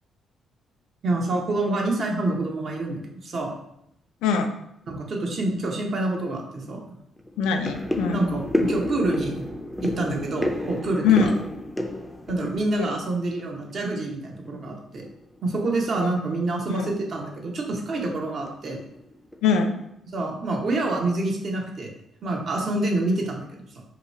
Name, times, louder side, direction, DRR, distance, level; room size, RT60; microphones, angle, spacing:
voice 1, 1.0-3.5 4.9-7.0 8.1-9.4 9.8-11.3 12.3-15.0 15.4-18.8 20.1-21.9 22.2-23.8, right 2 dB, 55° right, 0 dB, 0.8 m, -27 dB
sound 1, 6.1-6.2 6.6-6.8 7.2-13.7 14.0-14.6 15.0-15.2 15.5-15.6 16.1-16.3 16.6-16.7 17.2-17.7 18.3-18.5 18.8-19.5 19.8-19.9, left 1 dB, 5° left, 0.4 m, -30 dB
voice 2, 7.4-8.3 11.0-11.3 12.8-12.9 16.0-16.1 16.7-16.9 19.4-19.8, left 6 dB, 90° left, 5 dB, 0.3 m, -22 dB
2.8 x 2.3 x 4.0 m, 0.78 s
supercardioid pair, 70°, 0 cm